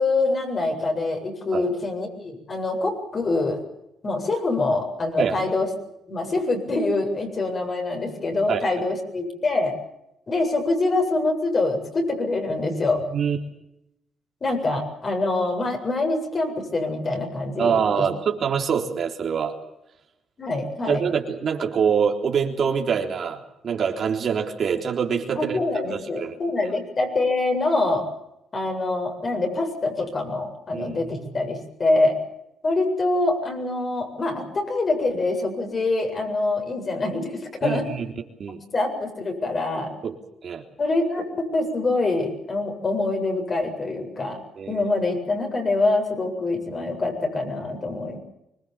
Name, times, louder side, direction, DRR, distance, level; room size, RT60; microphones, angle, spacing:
voice 1, 0.0-3.6 4.0-5.7 6.1-9.7 10.3-13.0 14.4-18.1 20.4-21.0 25.3-28.1 28.5-32.2 32.6-37.9 38.7-39.9 40.8-44.4 44.7-48.2, left 2 dB, 40° left, 4 dB, 7.8 m, -25 dB
voice 2, 17.6-19.5 20.9-25.6 25.9-26.3 30.7-31.5 37.6-38.1 38.4-38.6 40.0-40.1 40.4-40.6 44.6-44.9, right 7 dB, 55° right, 3 dB, 3.6 m, -25 dB
25.0 x 21.5 x 7.4 m, 0.84 s
cardioid pair, 90°, 0 cm